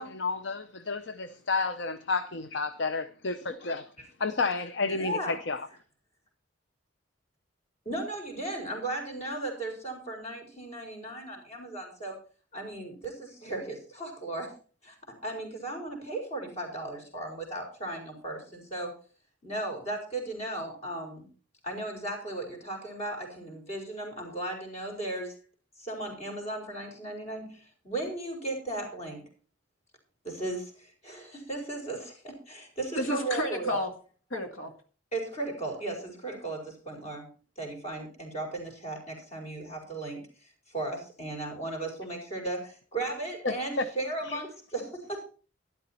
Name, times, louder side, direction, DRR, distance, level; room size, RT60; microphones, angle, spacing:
voice 1, 0.0-3.9 4.2-5.7 43.4-43.9 44.3-44.4, left 3 dB, 60° left, 0.7 m, -31 dB
voice 2, 4.8-5.4 7.8-12.2 12.5-14.5 14.8-15.0 15.2-18.9 19.4-21.3 21.6-25.3 25.8-29.2 30.2-33.8 35.1-37.3 37.6-40.2 40.7-45.2, right 2 dB, 35° left, 4.8 m, -36 dB
voice 3, 33.0-33.9 34.3-34.7, left 1 dB, 85° left, 1.9 m, -31 dB
13.0 x 11.5 x 4.3 m
head